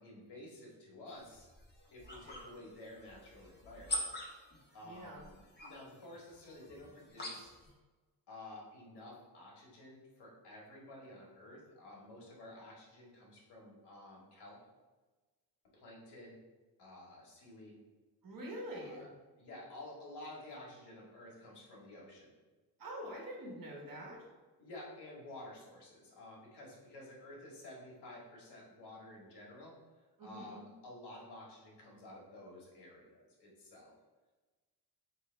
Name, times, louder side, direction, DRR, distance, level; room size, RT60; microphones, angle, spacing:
voice 1, 0.0-1.5 1.9-4.1 4.7-5.3 5.6-7.5 8.3-14.6 15.7-16.4 16.8-17.8 18.7-19.1 19.4-22.3 24.6-29.7 30.2-33.9, left 1 dB, 75° left, -3 dB, 1.5 m, -52 dB
sound 1, 1.2-7.7, left 1 dB, 25° left, 0.9 m, -45 dB
voice 2, 4.8-5.2 18.2-19.1 22.8-24.2 30.2-30.6, equal, 55° right, -2 dB, 1.3 m, -45 dB
4.1 x 3.2 x 3.3 m, 1.2 s
cardioid pair, 110°, 41 cm